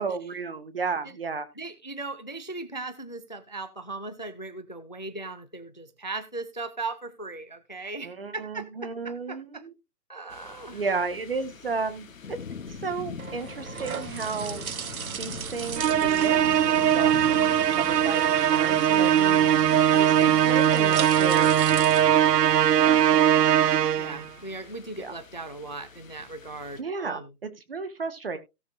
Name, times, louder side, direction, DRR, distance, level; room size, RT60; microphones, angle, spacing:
voice 1, 0.0-1.5 8.0-9.7 10.7-12.4 12.7-14.7 15.2-19.1 19.7-21.5 22.8-23.7 25.0-25.1 26.8-28.4, right 4 dB, 35° right, 1.5 m, -33 dB
voice 2, 1.6-9.6 10.1-10.8 18.9-19.6 24.0-27.3, right 3 dB, 30° left, 0.6 m, -38 dB
sound 1, 10.3-26.8, left 6 dB, 55° left, 1.5 m, -44 dB
sound 2, 12.7-23.0, right 7 dB, 60° right, 0.9 m, -37 dB
Musical instrument, 15.8-24.3, right 10 dB, 85° right, 0.6 m, -20 dB
17.0 x 6.5 x 2.6 m
hypercardioid pair, 175°, 48 cm